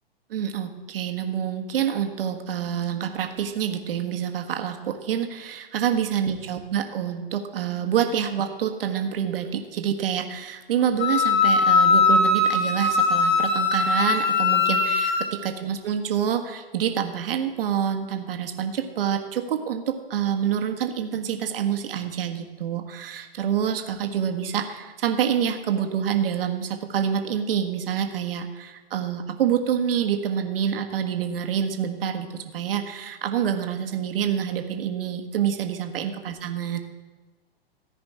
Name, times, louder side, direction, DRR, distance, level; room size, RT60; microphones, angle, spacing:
voice 1, 0.3-36.8, right 8 dB, 65° right, 5 dB, 1.5 m, -27 dB
Wind instrument woodwind instrument, 11.0-15.3, left 3 dB, 20° left, 2.1 m, -20 dB
15.0 x 5.1 x 9.3 m, 1.3 s
hypercardioid pair, 125°, 31 cm